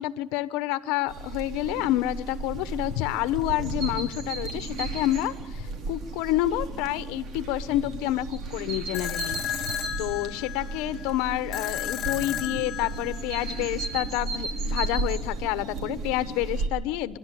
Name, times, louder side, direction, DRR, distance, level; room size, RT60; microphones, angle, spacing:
voice 1, 0.0-17.2, left 15 dB, 85° left, 14 dB, 1.0 m, -29 dB
sound 1, 1.1-16.7, right 3 dB, 55° right, 4.4 m, -34 dB
sound 2, 8.9-14.0, left 12 dB, 55° left, 1.1 m, -34 dB
29.5 x 11.5 x 8.4 m, 0.97 s
supercardioid pair, 100°, 0 cm